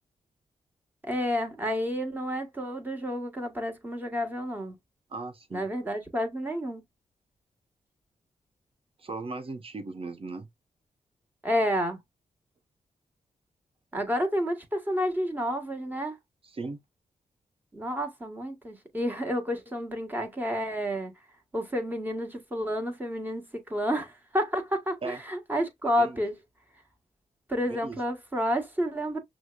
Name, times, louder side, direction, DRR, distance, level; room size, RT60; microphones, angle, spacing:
voice 1, 1.0-4.7 5.5-6.8 11.4-12.0 13.9-16.2 17.7-21.1 21.5-26.4 27.5-29.2, equal, 15° right, 1.3 m, -30 dB
voice 2, 5.1-5.7 9.0-10.5 16.4-16.8 25.0-25.2 26.0-26.2 27.6-28.0, right 3 dB, 45° right, 0.9 m, -37 dB
6.1 x 2.1 x 2.3 m
cardioid pair, 80°, 13 cm